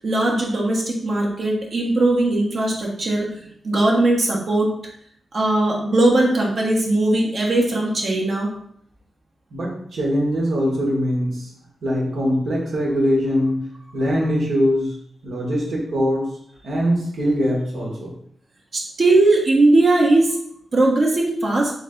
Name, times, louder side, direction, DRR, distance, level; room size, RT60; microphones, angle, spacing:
voice 1, 0.0-3.3 3.6-4.7 5.3-8.5 18.7-20.4 20.7-21.7, right 2 dB, 55° right, -2 dB, 1.2 m, -19 dB
voice 2, 9.5-11.5 11.8-13.7 13.9-14.9 15.2-16.2 16.6-18.1, equal, 80° right, -3 dB, 1.5 m, -22 dB
3.5 x 3.4 x 3.8 m, 0.67 s
cardioid pair, 80°, 0 cm